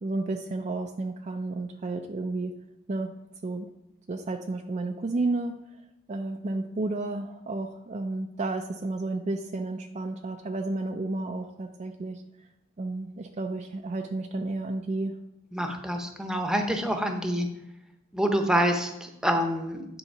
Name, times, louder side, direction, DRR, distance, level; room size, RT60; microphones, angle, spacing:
voice 1, 0.0-2.5 2.9-3.1 3.4-3.7 4.1-5.6 6.1-12.2 12.8-15.1, right 2 dB, 35° right, 5 dB, 0.4 m, -32 dB
voice 2, 15.5-17.5 18.1-19.9, equal, 5° right, 4 dB, 0.8 m, -26 dB
9.8 x 3.9 x 5.5 m, 0.87 s
head